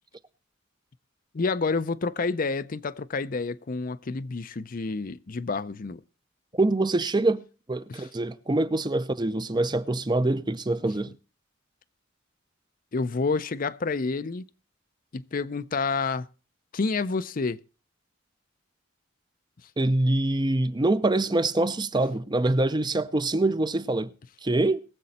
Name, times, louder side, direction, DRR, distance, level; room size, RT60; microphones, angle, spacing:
voice 1, 1.3-6.0 7.9-8.1 12.9-14.4 15.1-16.3 16.7-17.6, left 4 dB, 45° left, 0.5 m, -29 dB
voice 2, 6.5-7.4 7.7-11.1 19.8-24.1 24.4-24.8, right 2 dB, 20° right, 0.6 m, -25 dB
21.0 x 7.6 x 4.2 m
head